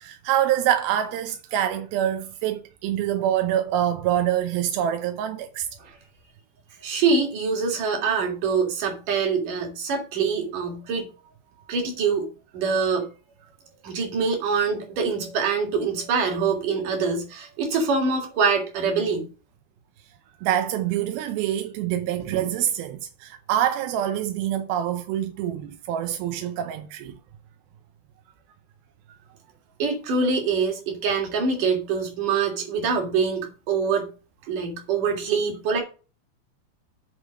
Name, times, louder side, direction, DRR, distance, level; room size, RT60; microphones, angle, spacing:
voice 1, 0.0-5.7 20.4-27.1, right 11 dB, 90° right, 2.6 m, -25 dB
voice 2, 6.8-11.1 11.7-12.3 12.5-13.1 13.8-19.3 29.8-34.1 34.5-35.8, right 5 dB, 65° right, 3.4 m, -24 dB
8.1 x 3.8 x 6.2 m
omnidirectional pair, 4.2 m